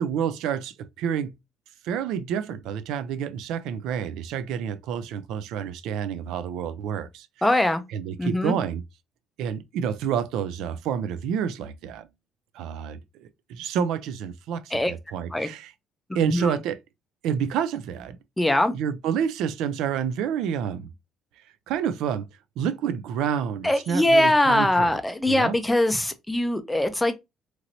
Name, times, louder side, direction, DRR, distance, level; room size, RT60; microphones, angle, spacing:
voice 1, 0.0-1.3 1.8-7.5 7.9-8.8 9.4-12.1 12.5-15.7 16.1-16.8 17.2-18.2 18.7-20.9 21.7-22.3 22.6-25.0 25.3-25.6, right 8 dB, 75° right, 0.3 m, -29 dB
voice 2, 7.4-7.8 8.2-8.6 14.7-14.9 15.3-15.5 16.1-16.5 18.4-18.8 23.6-27.2, left 1 dB, 5° left, 0.4 m, -22 dB
3.0 x 2.9 x 2.6 m
cardioid pair, 160°, 0 cm